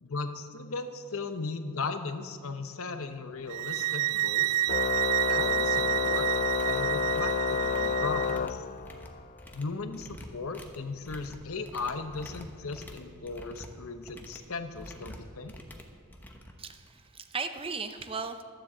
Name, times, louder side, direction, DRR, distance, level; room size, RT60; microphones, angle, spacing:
voice 1, 0.0-4.6 5.3-6.3 6.6-8.6 9.5-15.6, left 4 dB, 65° left, 8 dB, 0.8 m, -37 dB
sound 1, 3.0-3.1 3.6-3.8 4.1-4.4 4.7-5.6 5.9-17.2, equal, 10° left, 1.0 m, -49 dB
sound 2, 3.5-8.4, right 15 dB, 80° right, 0.3 m, -29 dB
Organ, 4.7-9.2, left 6 dB, 40° left, 0.3 m, -30 dB
voice 2, 16.6-18.4, right 4 dB, 25° right, 8 dB, 0.6 m, -36 dB
12.0 x 7.6 x 7.3 m, 2.1 s
head